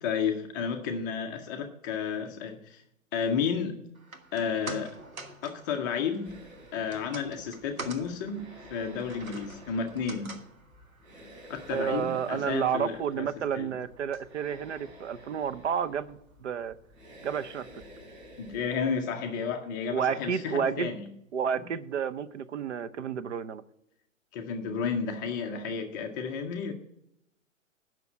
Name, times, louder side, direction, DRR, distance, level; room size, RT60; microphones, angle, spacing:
voice 1, 0.0-2.8 3.1-3.8 4.3-5.0 5.4-6.4 6.7-10.3 11.5-13.3 13.5-13.7 18.4-21.1 24.3-26.7, left 6 dB, 15° left, 4 dB, 0.5 m, -32 dB
sound 1, 3.9-16.3 16.7-16.8, right 2 dB, 90° right, 1.4 m, -47 dB
sound 2, 6.2-19.0, equal, 35° right, 4.6 m, -52 dB
voice 2, 11.7-16.7 17.2-17.7 19.9-21.0 21.3-23.6, right 7 dB, 60° right, 14 dB, 0.8 m, -31 dB
9.3 x 6.0 x 8.4 m, 0.80 s
figure-of-eight pair, 125°, 40 cm